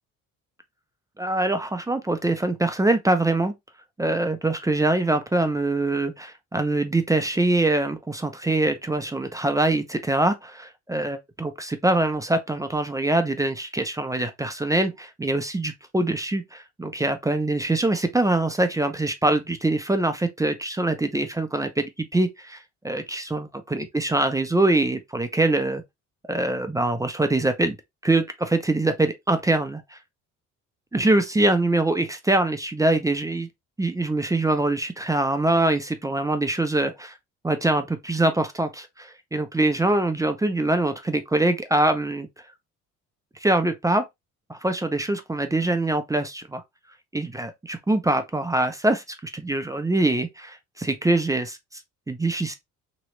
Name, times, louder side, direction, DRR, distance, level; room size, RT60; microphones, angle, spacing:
voice 1, 1.2-3.5 4.0-25.8 26.3-27.8 28.0-30.0 30.9-33.5 33.8-37.2 37.4-42.3 43.4-44.1 44.5-46.6 47.1-51.6 52.1-52.5, right 2 dB, 10° right, 0.6 m, -24 dB
3.0 x 3.0 x 3.0 m
cardioid pair, 85°, 32 cm